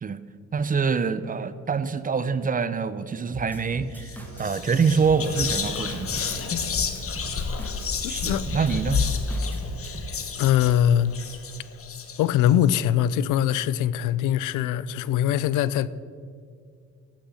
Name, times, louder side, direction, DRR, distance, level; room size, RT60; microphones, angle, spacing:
voice 1, 0.5-6.2 8.1-9.0, right 5 dB, 30° right, 0.6 m, -25 dB
sound 1, 3.3-4.5 4.8-7.9 8.2-10.2, left 1 dB, 5° left, 1.4 m, -39 dB
Whispering, 4.0-4.2 4.4-12.5, left 5 dB, 50° left, 1.1 m, -30 dB
sound 2, 4.2-11.0, right 6 dB, 80° right, 1.0 m, -44 dB
voice 2, 8.0-8.5 10.4-11.2 12.2-15.9, left 11 dB, 90° left, 0.5 m, -22 dB
14.0 x 6.5 x 5.7 m
cardioid pair, 90°, 30 cm